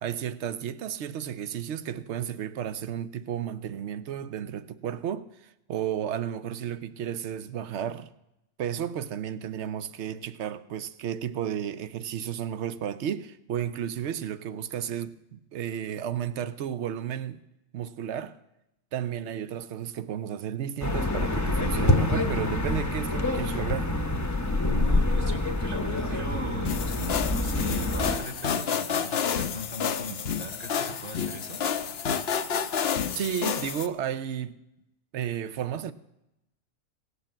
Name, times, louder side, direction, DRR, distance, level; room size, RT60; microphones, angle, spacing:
voice 1, 0.0-8.1 8.6-17.4 17.7-18.4 18.9-23.9 33.1-34.6 35.1-35.9, right 9 dB, 65° right, 0.9 m, -33 dB
sound 1, 20.8-28.2, left 2 dB, 15° left, 0.8 m, -26 dB
voice 2, 24.6-31.6, right 1 dB, 40° right, 1.7 m, -39 dB
sound 2, 26.6-33.9, left 7 dB, 55° left, 0.9 m, -29 dB
17.5 x 8.2 x 7.5 m
omnidirectional pair, 1.4 m